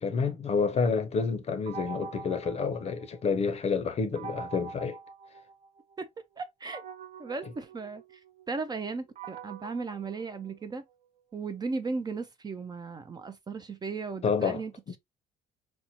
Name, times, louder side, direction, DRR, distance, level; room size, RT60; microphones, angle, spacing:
voice 1, 0.0-5.0 14.2-14.6, left 5 dB, 40° left, 0.6 m, -29 dB
sound 1, 1.7-3.5 4.2-6.0 6.7-10.9, right 5 dB, 45° right, 0.7 m, -45 dB
voice 2, 6.4-6.8 7.2-8.0 8.5-10.8 11.3-14.7, right 4 dB, 25° right, 0.4 m, -36 dB
4.2 x 2.1 x 2.7 m
cardioid pair, 110°, 17 cm